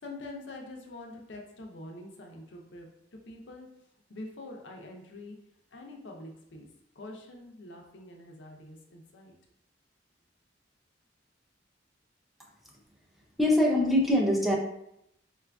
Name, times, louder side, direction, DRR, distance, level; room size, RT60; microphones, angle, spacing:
voice 1, 0.0-3.7 4.1-5.4 5.7-6.7 7.0-9.3, left 2 dB, 75° left, 2 dB, 0.6 m, -45 dB
voice 2, 13.4-14.6, left 1 dB, ahead, -2 dB, 0.5 m, -23 dB
4.2 x 2.4 x 2.2 m, 0.76 s
head